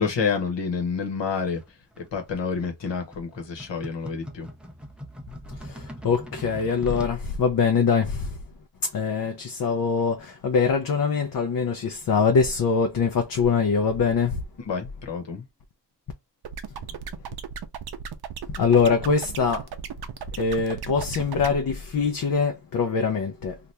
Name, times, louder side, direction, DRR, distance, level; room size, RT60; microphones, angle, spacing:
voice 1, 0.0-1.6 2.1-4.5 14.7-15.4, left 5 dB, 85° left, 1.1 m, -28 dB
sound 1, 1.5-7.2, equal, 5° right, 0.4 m, -42 dB
voice 2, 5.5-8.4 8.8-14.4 18.5-19.7 20.3-23.6, left 5 dB, 50° left, 0.6 m, -23 dB
sound 2, 16.4-21.5, right 7 dB, 65° right, 0.6 m, -36 dB
2.7 x 2.5 x 3.2 m
wide cardioid pair, 180°, 42 cm